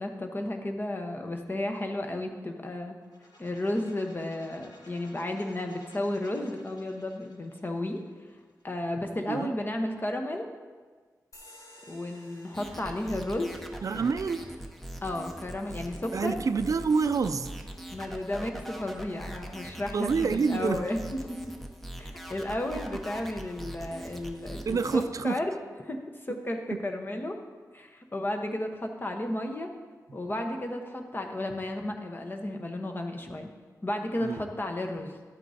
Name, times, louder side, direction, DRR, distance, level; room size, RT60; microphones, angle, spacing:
voice 1, 0.0-3.0 3.4-8.0 8.6-10.5 11.9-13.6 15.0-16.4 17.9-21.5 22.0-25.5 25.9-27.4 27.7-29.7 30.1-33.5 33.8-35.2, left 1 dB, 30° left, 3 dB, 1.0 m, -33 dB
sound 1, 3.0-8.8, left 1 dB, 75° left, 1.4 m, -56 dB
sound 2, 11.3-18.4, left 1 dB, 55° left, 1.6 m, -57 dB
sound 3, 12.5-25.0, right 1 dB, 5° left, 0.8 m, -42 dB
voice 2, 13.8-14.4 16.1-17.5 19.9-20.9 24.7-25.4 26.3-26.4 26.7-26.8 34.2-34.4, right 5 dB, 55° right, 11 dB, 0.4 m, -27 dB
12.0 x 8.2 x 2.8 m, 1.5 s
wide cardioid pair, 80°, 7 cm